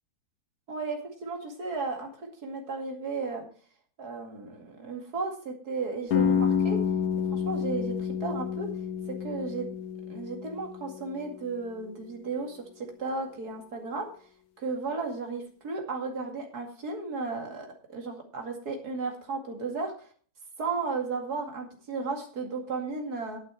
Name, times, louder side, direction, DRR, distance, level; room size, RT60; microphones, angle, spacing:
voice 1, 0.7-3.4 4.0-6.8 7.3-8.7 9.2-9.7 10.1-14.1 14.6-20.1 20.6-23.4, right 4 dB, 85° right, 2 dB, 2.8 m, -34 dB
sound 1, 6.1-11.9, left 7 dB, 70° left, 1.3 m, -29 dB
11.0 x 9.1 x 4.7 m, 0.43 s
omnidirectional pair, 1.6 m